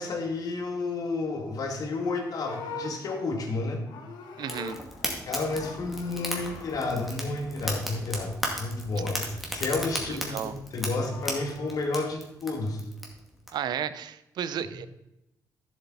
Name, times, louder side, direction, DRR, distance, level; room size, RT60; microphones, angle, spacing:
voice 1, 0.0-3.8 5.3-8.3 8.6-12.8, left 3 dB, 55° left, 3 dB, 2.1 m, -31 dB
Livestock farm animals working animals, 1.8-5.2 5.5-6.8 10.6-11.8, left 4 dB, 90° left, 1.5 m, -43 dB
Fire, 4.4-13.5, equal, ahead, 2.2 m, -36 dB
voice 2, 4.4-4.8 9.2-9.3 10.0-10.5 13.5-14.9, right 9 dB, 75° right, 13 dB, 0.7 m, -33 dB
11.5 x 7.6 x 4.2 m, 0.91 s
cardioid pair, 115°, 7 cm